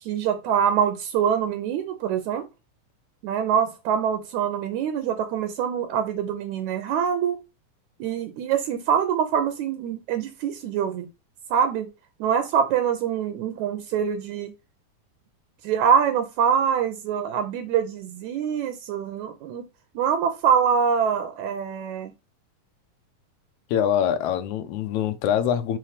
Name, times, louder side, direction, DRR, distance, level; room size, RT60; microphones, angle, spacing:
voice 1, 0.0-2.4 3.2-7.4 8.0-11.1 11.5-11.9 12.2-14.5 15.6-19.6 20.0-22.1, right 8 dB, 75° right, 2.0 m, -24 dB
voice 2, 23.7-25.8, left 9 dB, 75° left, 2.0 m, -24 dB
5.8 x 3.4 x 4.9 m
omnidirectional pair, 3.5 m